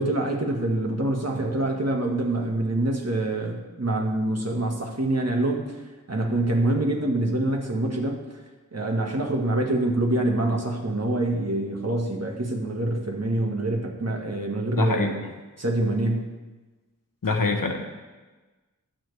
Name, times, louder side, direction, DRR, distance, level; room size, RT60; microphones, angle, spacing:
voice 1, 0.0-5.7 6.1-8.2 8.7-15.2 15.6-16.3, right 1 dB, 50° right, 1 dB, 1.7 m, -25 dB
voice 2, 14.7-15.1 17.2-17.9, left 3 dB, 85° left, 3 dB, 1.3 m, -24 dB
20.5 x 7.1 x 3.4 m, 1.2 s
wide cardioid pair, 60°, 32 cm